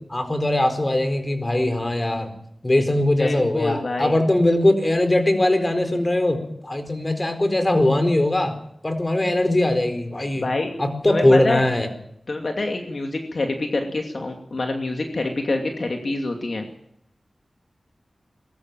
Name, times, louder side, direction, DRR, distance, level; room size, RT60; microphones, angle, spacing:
voice 1, 0.1-2.3 2.6-8.6 8.8-10.5 10.8-11.9, left 1 dB, 35° left, 8 dB, 4.4 m, -20 dB
voice 2, 3.2-4.1 10.4-10.7 11.1-11.6 12.3-16.7, left 2 dB, 65° left, 3 dB, 2.6 m, -26 dB
21.5 x 13.5 x 9.1 m, 0.74 s
cardioid pair, 45°, 0 cm